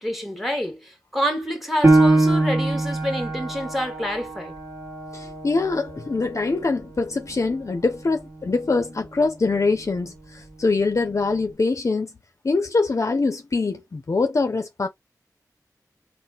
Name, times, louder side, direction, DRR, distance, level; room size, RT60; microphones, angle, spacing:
voice 1, 0.0-4.5, equal, 5° right, 1.2 m, -28 dB
Piano, 1.8-7.0 7.5-7.6 8.2-8.7, right 2 dB, 35° right, 1.6 m, -23 dB
voice 2, 5.1-12.1 12.4-14.9, left 3 dB, 50° left, 0.5 m, -23 dB
4.1 x 2.1 x 3.8 m
wide cardioid pair, 85°, 7 cm